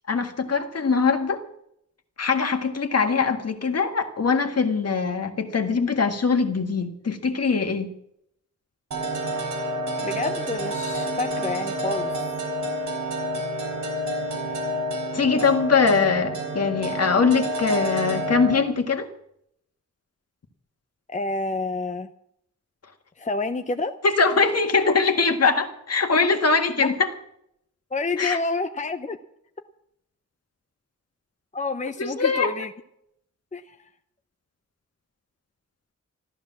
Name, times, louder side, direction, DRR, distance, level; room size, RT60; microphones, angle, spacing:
voice 1, 0.1-1.4 2.2-7.9 15.1-19.1 24.0-27.1 28.2-28.4 32.0-32.7, left 4 dB, 55° left, 6 dB, 1.8 m, -22 dB
sound 1, 8.9-18.5, equal, 80° right, 4.8 m, -29 dB
voice 2, 10.0-12.1 21.1-22.1 23.2-23.9 26.8-26.9 27.9-29.2 31.5-32.7 33.5-33.8, left 3 dB, 25° left, 8 dB, 0.8 m, -28 dB
14.0 x 12.5 x 7.4 m, 0.75 s
wide cardioid pair, 115°, 30 cm